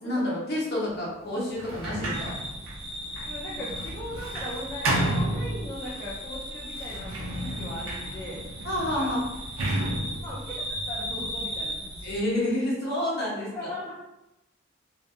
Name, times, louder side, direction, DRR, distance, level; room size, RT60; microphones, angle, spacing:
voice 1, 0.0-2.3 8.6-9.2 12.0-13.7, left 1 dB, 50° left, -5 dB, 0.9 m, -29 dB
Sliding door, 1.5-6.1 6.7-11.5, right 1 dB, 80° right, 0.5 m, -32 dB
sound 1, 2.1-12.2, equal, 55° right, 0.9 m, -37 dB
voice 2, 3.2-8.4 9.0-9.2 10.2-12.1 13.5-14.0, left 1 dB, 15° left, -8 dB, 0.4 m, -39 dB
2.6 x 2.5 x 2.2 m, 0.93 s
head